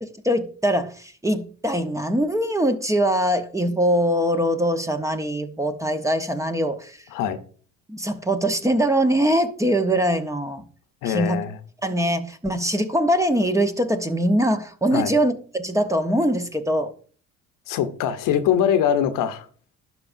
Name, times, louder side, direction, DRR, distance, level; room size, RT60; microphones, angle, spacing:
voice 1, 0.2-7.0 7.9-10.6 11.0-11.4 11.8-16.9, equal, 10° right, 1.0 m, -22 dB
voice 2, 11.0-11.6 14.9-15.1 17.7-19.5, left 9 dB, 70° left, 1.0 m, -22 dB
11.5 x 4.9 x 2.7 m
supercardioid pair, 85°, 34 cm